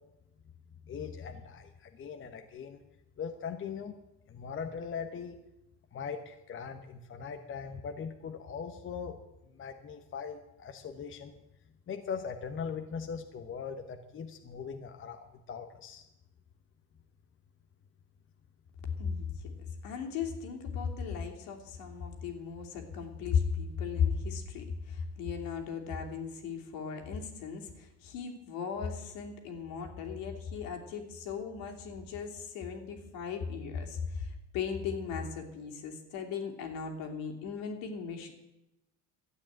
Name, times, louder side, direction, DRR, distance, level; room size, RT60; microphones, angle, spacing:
voice 1, 0.8-2.8 3.2-4.0 4.3-5.4 5.9-9.2 9.4-11.4 11.9-16.0, left 6 dB, 35° left, 6 dB, 1.2 m, -40 dB
voice 2, 19.0-19.5 19.8-38.3, left 6 dB, 75° left, 3 dB, 2.9 m, -36 dB
12.5 x 8.4 x 9.0 m, 0.91 s
supercardioid pair, 110°, 35 cm